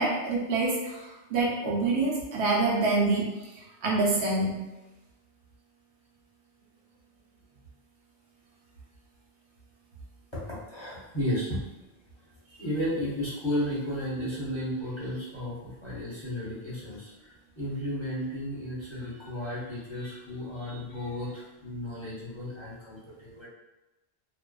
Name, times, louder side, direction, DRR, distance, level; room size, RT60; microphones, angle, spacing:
voice 1, 0.0-3.3 3.5-4.6, right 3 dB, 90° right, -3 dB, 0.9 m, -26 dB
voice 2, 10.3-11.6 12.6-23.5, left 1 dB, 30° left, -9 dB, 0.7 m, -33 dB
2.4 x 2.2 x 2.3 m, 1.0 s
omnidirectional pair, 1.1 m